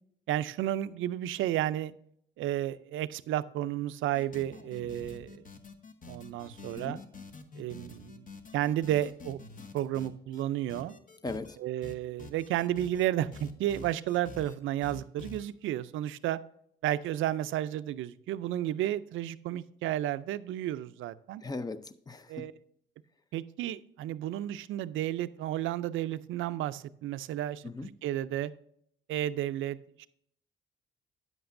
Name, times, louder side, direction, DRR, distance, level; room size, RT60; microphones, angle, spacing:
voice 1, 0.3-1.9 2.4-5.4 6.1-7.0 7.5-8.3 8.5-9.4 9.7-11.0 11.6-16.4 16.8-21.4 22.3-22.5 23.3-28.5 29.1-30.1, right 13 dB, 80° right, 0.4 m, -32 dB
sound 1, 4.1-10.4 10.7-11.6 11.8-13.1 13.3-14.5 14.8-15.5, left 3 dB, 40° left, 1.0 m, -47 dB
voice 2, 11.2-11.6 21.4-22.5 27.6-28.0, left 3 dB, 20° left, 0.5 m, -39 dB
9.2 x 8.0 x 2.5 m
cardioid pair, 90°, 20 cm